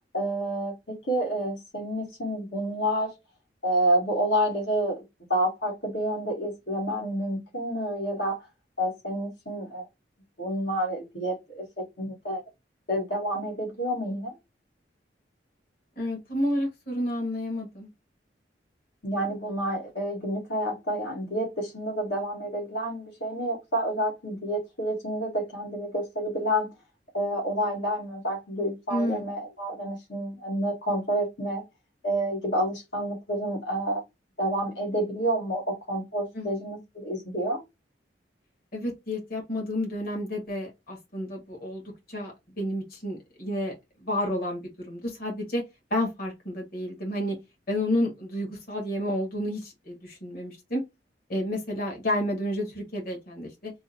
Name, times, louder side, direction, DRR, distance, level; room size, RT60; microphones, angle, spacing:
voice 1, 0.1-3.1 3.6-5.0 5.3-8.4 8.8-9.9 10.4-12.4 12.9-14.3 19.0-26.7 27.1-31.6 32.0-34.0 34.4-37.6, right 1 dB, 85° left, 1.4 m, -29 dB
voice 2, 16.0-17.9 28.9-29.3 36.3-36.5 38.7-43.7 44.0-45.6 45.9-47.4 47.7-50.8 51.3-53.7, left 1 dB, 55° left, 1.5 m, -30 dB
3.4 x 2.1 x 4.1 m
head